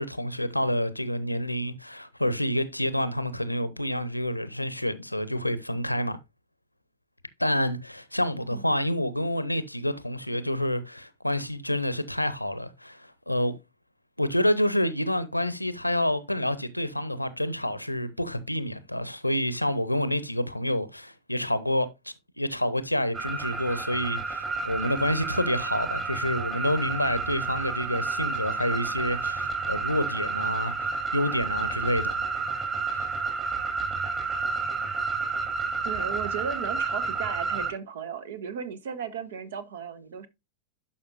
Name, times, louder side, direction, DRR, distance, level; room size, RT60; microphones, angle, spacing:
voice 1, 0.0-6.2 7.4-13.5 14.2-32.2 32.9-33.1, left 1 dB, 85° left, 0.7 m, -28 dB
sound 1, 23.1-37.7, right 4 dB, 25° right, 3.1 m, -30 dB
voice 2, 35.8-40.3, right 7 dB, 60° right, 1.1 m, -35 dB
11.5 x 5.5 x 2.6 m
figure-of-eight pair, 90°, 0 cm